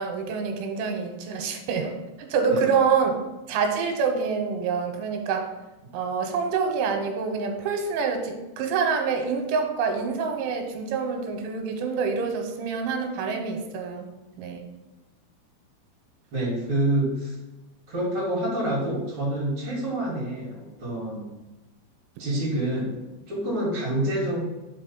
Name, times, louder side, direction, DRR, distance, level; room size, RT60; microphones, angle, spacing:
voice 1, 0.0-1.9 2.2-3.2 3.5-5.5 5.9-14.1 14.4-14.7, right 5 dB, 80° right, 4 dB, 3.3 m, -26 dB
voice 2, 16.3-17.4 17.9-21.3 22.2-22.9 23.3-24.4, right 1 dB, 40° right, -6 dB, 2.0 m, -27 dB
5.7 x 5.2 x 5.4 m, 1.1 s
omnidirectional pair, 5.5 m